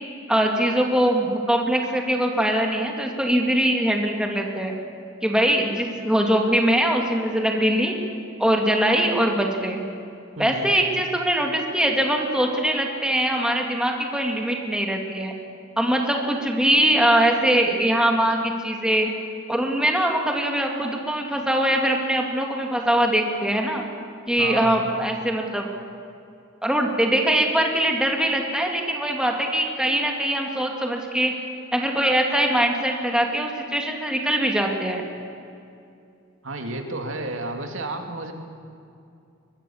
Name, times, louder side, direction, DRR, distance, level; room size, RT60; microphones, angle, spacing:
voice 1, 0.3-4.7 5.2-7.9 8.4-9.8 10.4-15.3 15.8-19.1 19.5-23.8 24.3-25.6 26.6-31.3 31.7-35.0, right 1 dB, 5° right, 1 dB, 2.3 m, -22 dB
voice 2, 10.4-10.7 24.4-24.8 36.4-38.3, right 2 dB, 85° right, 4 dB, 2.5 m, -31 dB
23.0 x 22.0 x 7.2 m, 2.5 s
head